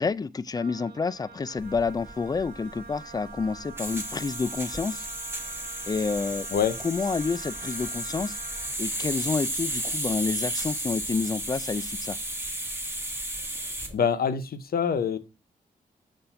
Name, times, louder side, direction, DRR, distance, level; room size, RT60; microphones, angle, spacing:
voice 1, 0.0-5.1 5.8-6.5 6.8-8.4 8.8-12.2, left 4 dB, 25° left, 0.3 m, -29 dB
Wind instrument woodwind instrument, 0.5-8.8, right 5 dB, 70° right, 1.1 m, -46 dB
sound 1, 1.6-13.9, right 1 dB, 15° right, 1.3 m, -34 dB
voice 2, 13.9-15.2, left 7 dB, 65° left, 0.7 m, -25 dB
7.0 x 2.6 x 5.5 m
cardioid pair, 65°, 17 cm